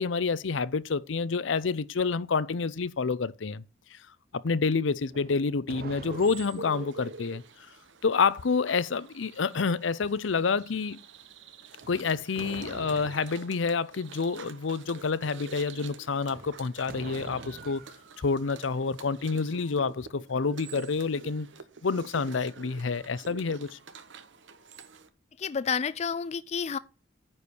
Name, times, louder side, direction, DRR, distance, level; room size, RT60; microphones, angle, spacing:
voice 1, 0.0-3.6 3.9-4.0 4.3-7.4 8.0-11.0 11.9-17.8 18.2-21.5 21.8-23.8, left 4 dB, 75° left, 0.6 m, -28 dB
sound 1, 5.0-6.8 11.8-13.4 16.2-18.0, right 3 dB, 50° right, 0.7 m, -45 dB
sound 2, 6.1-25.1, right 4 dB, 70° right, 1.0 m, -47 dB
voice 2, 25.4-26.8, left 6 dB, 35° left, 0.4 m, -30 dB
9.8 x 4.7 x 6.9 m
head